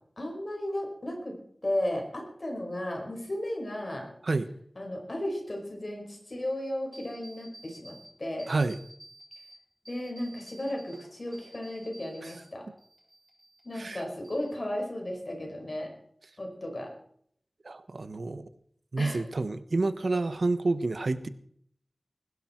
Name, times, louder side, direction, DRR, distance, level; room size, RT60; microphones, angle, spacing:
voice 1, 0.2-1.4 1.6-4.1 4.8-8.5 9.9-12.7 13.6-15.9 16.4-16.9 19.0-19.2, left 1 dB, 55° left, 2 dB, 5.2 m, -34 dB
sound 1, 6.9-8.1 8.4-9.5 9.9-12.5 12.8-13.9 14.2-14.9, right 1 dB, 20° right, 7.4 m, -52 dB
voice 2, 8.5-8.8 12.2-12.3 13.7-14.0 17.6-18.5 18.9-21.3, right 3 dB, 75° right, 12 dB, 1.0 m, -29 dB
21.0 x 12.0 x 4.5 m, 0.64 s
wide cardioid pair, 55°, 0 cm